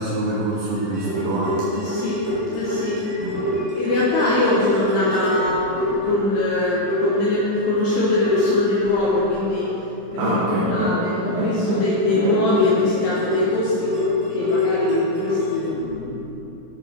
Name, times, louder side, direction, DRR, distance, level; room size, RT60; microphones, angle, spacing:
voice 1, 0.0-1.6 3.2-3.5 10.2-10.7, right 2 dB, 90° right, -7 dB, 3.4 m, -25 dB
sound 1, 0.7-6.6 6.9-7.6 8.1-9.7 10.2-15.6, left 1 dB, 45° right, 1.5 m, -25 dB
voice 2, 1.8-3.0 3.7-9.7 10.1-14.0 14.3-16.3, left 2 dB, 75° left, -6 dB, 3.1 m, -23 dB
11.5 x 6.7 x 4.4 m, 2.9 s
omnidirectional pair, 4.9 m